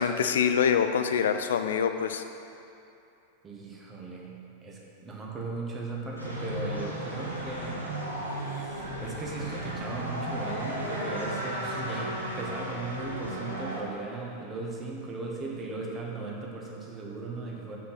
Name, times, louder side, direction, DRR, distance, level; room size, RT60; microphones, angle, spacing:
voice 1, 0.0-2.2, left 7 dB, 60° left, 8 dB, 0.5 m, -25 dB
voice 2, 3.4-8.0 8.3-17.8, right 3 dB, 20° right, -2 dB, 1.4 m, -37 dB
sound 1, 6.2-13.8, equal, 85° right, 1.3 m, -35 dB
6.2 x 6.2 x 5.8 m, 2.7 s
figure-of-eight pair, 90°, 0 cm